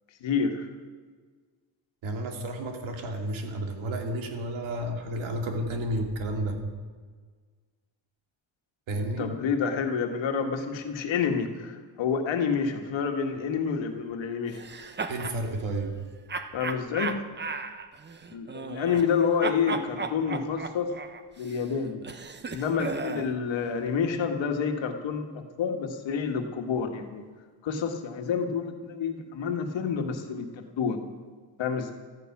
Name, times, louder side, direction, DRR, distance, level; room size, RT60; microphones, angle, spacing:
voice 1, 0.2-0.7 9.0-14.6 16.5-17.2 18.3-20.9 21.4-22.0 22.5-25.3 25.6-27.2 27.6-31.0 31.6-31.9, left 6 dB, 70° left, 4 dB, 1.7 m, -28 dB
voice 2, 2.0-6.6 8.9-9.3 15.1-15.9, right 1 dB, 80° right, 3 dB, 2.5 m, -31 dB
sound 1, 14.5-15.4 16.3-19.1 19.4-23.3, right 4 dB, 25° right, 0.8 m, -35 dB
14.0 x 13.5 x 6.0 m, 1.5 s
cardioid pair, 120°, 46 cm